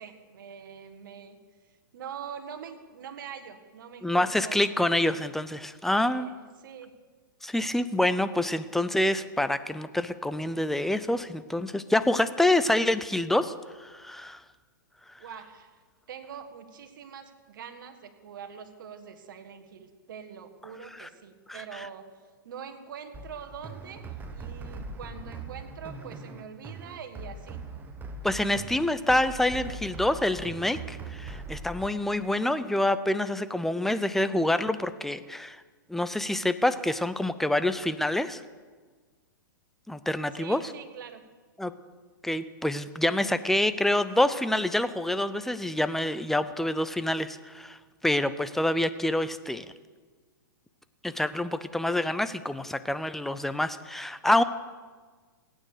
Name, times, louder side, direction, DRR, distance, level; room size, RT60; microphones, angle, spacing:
voice 1, 0.0-1.4 1.9-4.7 6.1-6.9 15.2-15.7 16.1-22.0 22.4-27.6 40.3-41.2, right 7 dB, 65° right, 7 dB, 1.7 m, -44 dB
voice 2, 4.0-6.3 7.4-13.5 13.8-14.4 21.0-21.1 21.5-21.9 28.2-35.6 35.9-38.4 39.9-40.7 41.6-41.7 42.2-49.7 51.0-54.4, left 1 dB, 5° left, 12 dB, 0.5 m, -27 dB
sound 1, 23.1-31.9, right 3 dB, 15° right, 1.2 m, -41 dB
17.0 x 9.0 x 6.7 m, 1.5 s
hypercardioid pair, 130°, 12 cm